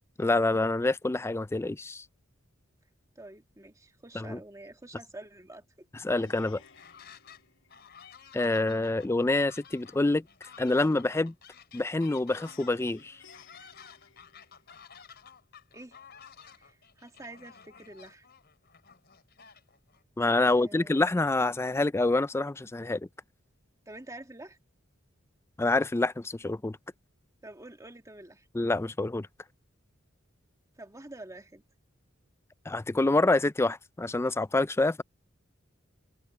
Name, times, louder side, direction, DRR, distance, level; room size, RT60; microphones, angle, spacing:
voice 1, 0.2-2.0 4.1-4.4 6.0-6.6 8.3-10.2 10.6-11.3 11.7-13.2 20.2-23.1 25.6-26.8 28.5-29.3 32.7-35.0, left 2 dB, 15° left, 0.4 m, -27 dB
voice 2, 3.2-5.9 15.7-16.0 16.6-18.3 20.4-21.0 23.9-24.6 27.4-28.5 30.8-31.6, right 2 dB, 15° right, 2.0 m, -47 dB
Plucked string instrument, 6.1-8.3 12.4-15.0, left 6 dB, 70° left, 4.9 m, -58 dB
sound 1, 6.4-7.4 7.7-20.0, left 7 dB, 55° left, 3.7 m, -53 dB
head